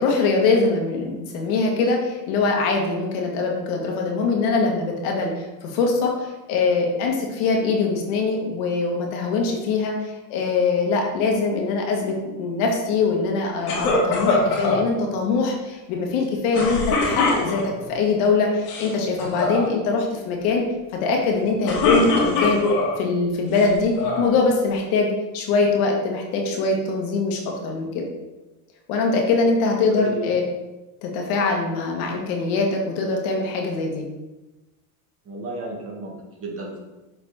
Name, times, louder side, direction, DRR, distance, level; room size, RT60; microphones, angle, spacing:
voice 1, 0.0-20.6 20.9-22.6 23.0-28.0 28.9-30.4 31.0-34.0, left 4 dB, 70° left, 0 dB, 1.8 m, -22 dB
sound 1, 13.7-14.8 16.5-17.8 18.5-18.9 19.2-19.6 21.4-22.9 23.5-24.3, left 3 dB, 90° left, 2.4 m, -22 dB
voice 2, 29.9-30.3 35.3-36.8, right 2 dB, 30° right, -1 dB, 1.8 m, -33 dB
7.1 x 4.1 x 4.3 m, 1.1 s
supercardioid pair, 115°, 45 cm